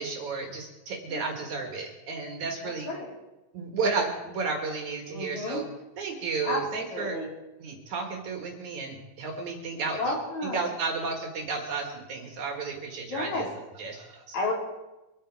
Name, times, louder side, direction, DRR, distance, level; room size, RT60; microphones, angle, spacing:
voice 1, 0.0-2.9 3.5-5.6 6.0-7.2 7.6-10.1 10.5-13.5 13.8-14.3, right 4 dB, 60° right, 2 dB, 2.9 m, -32 dB
voice 2, 5.1-5.6 6.4-6.6 6.9-7.3 9.7-10.6 13.1-13.5 14.3-14.5, left 2 dB, 55° left, -3 dB, 4.7 m, -31 dB
24.5 x 9.2 x 4.7 m, 1.0 s
omnidirectional pair, 4.2 m